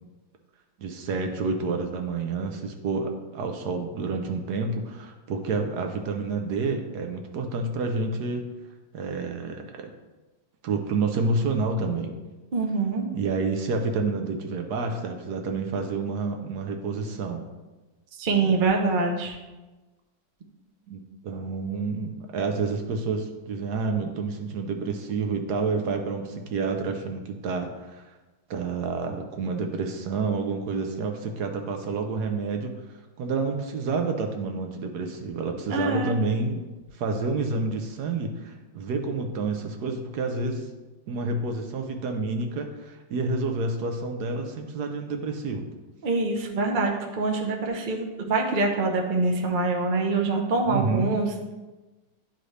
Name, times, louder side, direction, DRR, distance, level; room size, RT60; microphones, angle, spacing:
voice 1, 0.8-8.4 8.9-9.9 10.6-12.1 13.1-17.4 20.9-28.1 28.5-36.6 36.9-40.7 41.1-45.7 50.7-51.1, right 3 dB, 70° right, 4 dB, 1.1 m, -29 dB
voice 2, 12.5-13.0 18.2-19.4 35.7-36.1 46.0-51.5, right 3 dB, 50° right, 1 dB, 0.6 m, -25 dB
11.0 x 3.9 x 3.2 m, 1.2 s
omnidirectional pair, 2.0 m